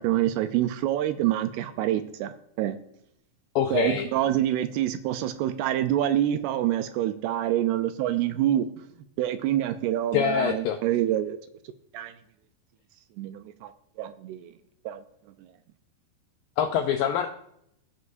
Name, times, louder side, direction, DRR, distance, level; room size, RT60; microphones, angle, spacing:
voice 1, 0.0-2.8 3.7-8.7 9.2-11.4 11.9-12.1 13.2-13.7 14.0-14.5 14.9-15.0 15.4-15.5, right 12 dB, 80° right, 9 dB, 2.5 m, -26 dB
voice 2, 3.6-4.1 10.1-10.8 16.6-17.3, left 9 dB, 85° left, 5 dB, 2.0 m, -25 dB
19.0 x 6.5 x 2.6 m, 0.75 s
omnidirectional pair, 4.9 m